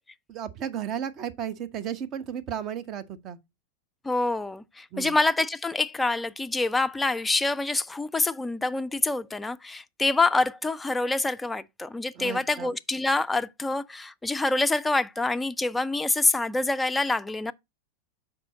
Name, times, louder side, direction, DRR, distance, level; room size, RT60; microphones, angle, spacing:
voice 1, 0.3-3.4 4.9-5.2 12.2-12.7, right 9 dB, 35° right, 0.7 m, -34 dB
voice 2, 4.0-17.5, left 2 dB, 10° left, 0.4 m, -26 dB
6.1 x 4.8 x 3.9 m
figure-of-eight pair, 90°, 0 cm